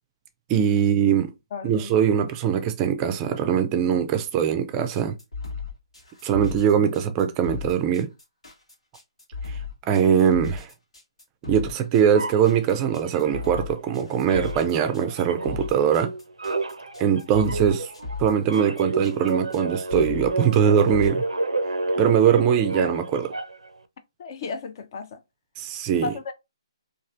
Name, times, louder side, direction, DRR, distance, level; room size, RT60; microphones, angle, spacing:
voice 1, 0.5-1.3 1.6-5.1 6.2-8.1 9.5-9.6 9.9-10.7 11.5-16.1 17.0-17.9 18.2-21.2 22.0-23.3 25.6-26.1, right 8 dB, 20° right, 0.3 m, -21 dB
voice 2, 1.5-2.2 24.2-25.2 26.0-26.3, left 4 dB, 45° left, 0.5 m, -34 dB
sound 1, 5.0-21.1, left 5 dB, 85° left, 1.3 m, -36 dB
sound 2, 12.1-14.0 14.3-23.8, right 2 dB, 90° right, 0.4 m, -30 dB
3.1 x 2.4 x 2.5 m
figure-of-eight pair, 140°, 3 cm